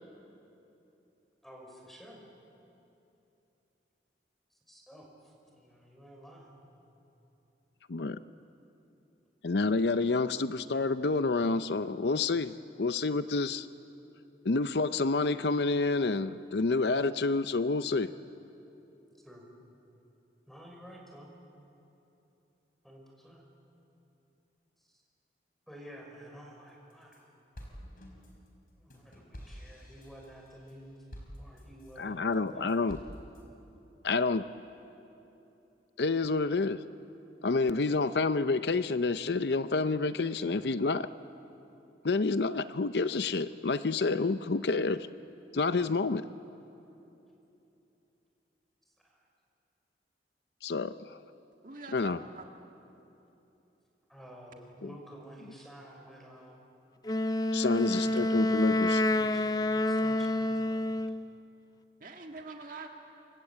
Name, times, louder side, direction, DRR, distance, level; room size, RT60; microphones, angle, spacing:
voice 1, 1.4-2.2 4.7-6.7 19.2-19.5 20.5-21.3 22.8-23.4 25.7-27.2 28.7-31.0 31.4-32.8 45.8-46.0 54.1-56.6 57.7-58.3 58.6-61.0, equal, ahead, 0 dB, 5.7 m, -51 dB
voice 2, 9.4-13.7 14.4-18.1 32.0-33.0 34.0-34.5 36.0-36.8 37.4-41.1 42.0-45.1 45.5-46.2 50.6-50.9 51.9-52.2 54.8-54.9 57.5-59.0, left 3 dB, 70° left, 12 dB, 0.6 m, -28 dB
sound 1, 26.7-27.2 27.5-32.1 32.5-33.4, equal, 55° left, 4.9 m, -49 dB
voice 3, 51.6-52.4 62.0-62.9, right 3 dB, 50° right, 3 dB, 1.9 m, -44 dB
Wind instrument woodwind instrument, 57.0-61.3, left 1 dB, 20° left, 0.5 m, -28 dB
28.0 x 24.5 x 8.6 m, 3.0 s
head